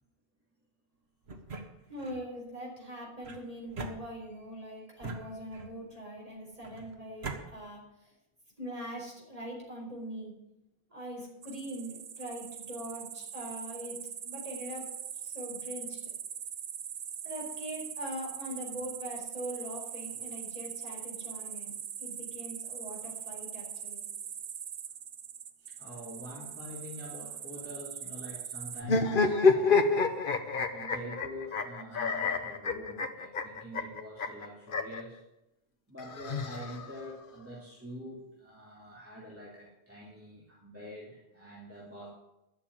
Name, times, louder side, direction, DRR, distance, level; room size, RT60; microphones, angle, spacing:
sound 1, 1.3-2.2 3.2-4.5 5.0-5.9 6.6-7.4, right 3 dB, 80° right, 1.6 m, -42 dB
voice 1, 1.9-8.1 8.6-10.3 10.9-14.9 15.1-16.1 17.2-21.7 22.0-24.0, equal, 35° right, -3 dB, 4.5 m, -42 dB
sound 2, 11.4-28.8, right 8 dB, 65° right, 0.9 m, -42 dB
voice 2, 25.6-30.1 30.7-35.2 35.9-42.1, equal, 15° right, -6 dB, 2.8 m, -45 dB
sound 3, 28.8-35.0 36.0-37.1, left 4 dB, 55° left, 1.1 m, -28 dB
11.5 x 6.8 x 9.6 m, 0.91 s
omnidirectional pair, 1.1 m